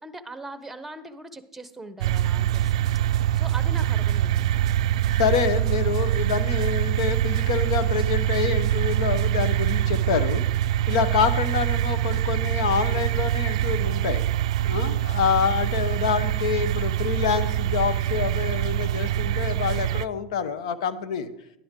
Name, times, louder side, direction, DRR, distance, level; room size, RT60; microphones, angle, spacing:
voice 1, 0.0-2.7 3.3-4.6 10.9-11.1 14.8-15.0, right 1 dB, 5° right, 11 dB, 0.9 m, -40 dB
sound 1, 2.0-20.1, right 12 dB, 80° right, 0.3 m, -24 dB
voice 2, 5.1-10.4 10.9-14.2 14.6-21.3, left 7 dB, 80° left, 13 dB, 0.9 m, -26 dB
11.5 x 10.5 x 3.7 m, 0.84 s
supercardioid pair, 120°, 3 cm